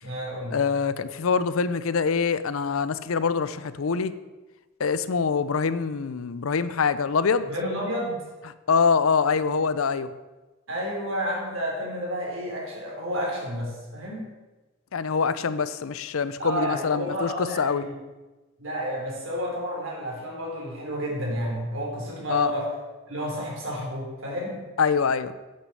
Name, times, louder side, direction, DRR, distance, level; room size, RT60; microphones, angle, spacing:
voice 1, 0.0-0.6 7.5-8.2 10.7-14.3 16.4-17.9 18.6-22.7 23.1-24.6, equal, 70° right, -2 dB, 3.5 m, -31 dB
voice 2, 0.5-4.1 4.8-7.5 8.7-10.1 14.9-17.8 22.3-22.5 24.8-25.3, left 5 dB, 80° left, 14 dB, 0.6 m, -24 dB
8.4 x 6.3 x 7.8 m, 1.2 s
head